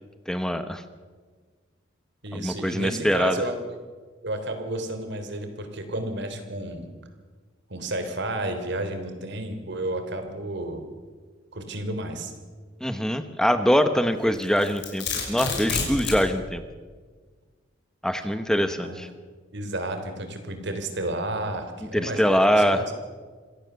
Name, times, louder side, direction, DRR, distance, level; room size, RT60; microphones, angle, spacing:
voice 1, 0.3-0.8 2.3-3.4 12.8-16.6 18.0-19.1 21.9-22.8, equal, 5° left, 9 dB, 0.9 m, -23 dB
voice 2, 2.2-3.6 4.2-6.9 7.7-10.8 11.5-12.3 18.6-19.0 19.5-22.9, right 1 dB, 65° right, 7 dB, 3.4 m, -32 dB
Domestic sounds home sounds, 14.3-16.3, left 4 dB, 65° left, 5.7 m, -28 dB
26.5 x 17.0 x 6.9 m, 1.5 s
head